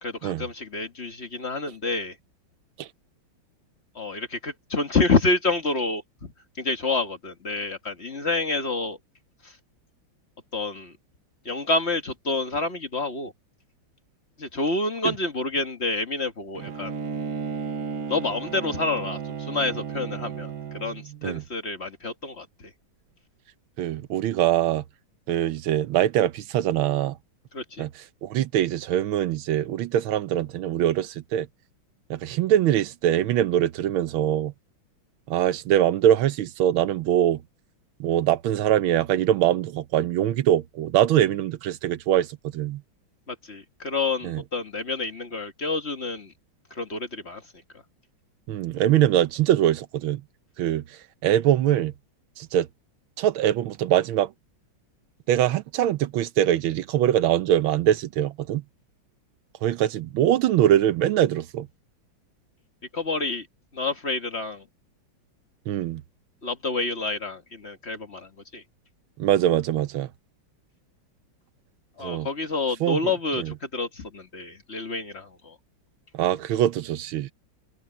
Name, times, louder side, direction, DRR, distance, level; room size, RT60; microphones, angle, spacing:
voice 1, 0.0-2.1 3.9-9.0 9.4-9.5 10.5-10.9 11.4-13.3 14.4-16.9 18.1-22.7 27.5-27.9 43.3-46.3 46.7-47.4 62.9-63.5 63.7-64.6 66.4-68.6 72.0-75.5, left 3 dB, 35° left, 1.7 m, -28 dB
Bowed string instrument, 16.6-21.2, right 6 dB, 50° right, 1.7 m, -34 dB
voice 2, 23.8-24.8 25.3-27.2 27.8-27.9 28.2-31.5 32.1-34.5 35.3-37.4 38.0-42.3 42.5-42.8 44.2-44.4 48.5-50.2 50.6-50.8 51.2-51.9 52.4-52.7 53.2-54.3 55.3-58.6 59.6-61.7 65.7-66.0 69.2-70.1 72.0-72.3 72.8-73.5 76.1-77.3, right 11 dB, 85° right, 1.6 m, -23 dB
omnidirectional pair, 2.2 m